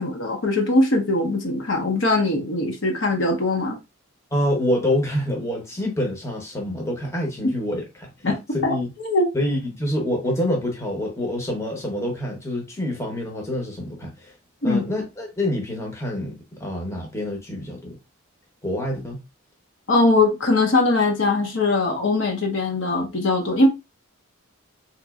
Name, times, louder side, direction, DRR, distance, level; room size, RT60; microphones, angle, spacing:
voice 1, 0.0-3.8 8.2-9.3 14.6-14.8 19.9-23.7, left 2 dB, 55° left, 0.8 m, -21 dB
voice 2, 4.3-8.9 9.3-14.3 14.6-18.0 18.6-19.2, left 1 dB, 15° left, 0.8 m, -26 dB
3.9 x 3.0 x 2.3 m
head